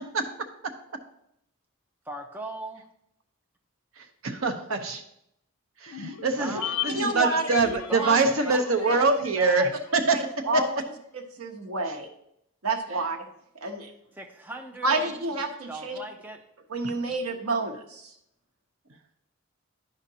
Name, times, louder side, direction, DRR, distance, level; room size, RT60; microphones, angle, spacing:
voice 1, 2.1-2.9 6.4-7.0 7.9-9.0 9.4-9.7 14.2-15.1 15.7-16.4, right 1 dB, 10° right, 3 dB, 0.4 m, -38 dB
voice 2, 4.0-5.0 5.8-6.5 6.8-10.2 11.9-12.0 16.8-16.9, right 3 dB, 70° right, 5 dB, 0.8 m, -24 dB
sound 1, 5.9-10.4 10.6-10.7, left 11 dB, 80° left, 0.6 m, -38 dB
voice 3, 7.0-7.4 8.0-8.2 8.9-9.0 10.1-10.2 10.5-10.7 11.4-12.1 12.6-13.2 13.6-13.9 14.8-16.0 16.7-18.1, right 3 dB, 90° right, 4 dB, 1.0 m, -28 dB
11.5 x 5.0 x 2.8 m, 0.77 s
head